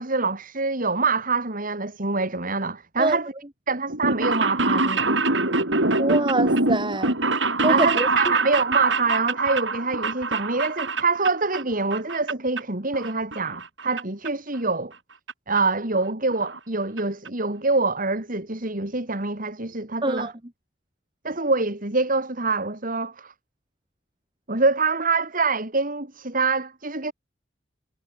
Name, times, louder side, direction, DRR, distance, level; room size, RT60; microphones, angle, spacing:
voice 1, 0.0-3.3 3.7-5.2 7.7-14.9 15.5-20.3 21.2-23.3 24.5-27.1, right 3 dB, 45° right, 3.1 m, -25 dB
sound 1, 3.9-11.6 11.9-12.6 12.9-14.0 14.3-14.4 15.3-15.4 15.6-15.7 15.9-16.0 16.3-16.6 17.0-17.1 17.3-17.4, right 3 dB, 65° right, 6.8 m, -24 dB
voice 2, 6.0-7.1 7.6-8.1 20.0-20.3, right 2 dB, 25° right, 2.8 m, -24 dB
head